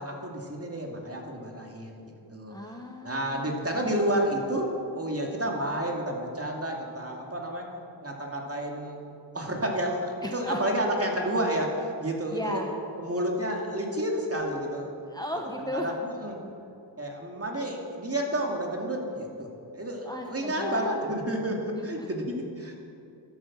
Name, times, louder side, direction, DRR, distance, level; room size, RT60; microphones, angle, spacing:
voice 1, 0.0-2.0 2.3-2.5 3.0-7.7 8.0-9.0 9.3-12.6 13.0-14.9 15.7-16.4 17.0-19.5 19.7-22.8, right 1 dB, 30° right, 0 dB, 2.4 m, -30 dB
voice 2, 2.5-4.0 10.2-10.6 12.3-12.7 15.1-15.9 20.0-21.0 22.0-22.1, equal, 10° left, 2 dB, 1.1 m, -36 dB
12.0 x 10.5 x 7.4 m, 2.7 s
wide cardioid pair, 75°, 46 cm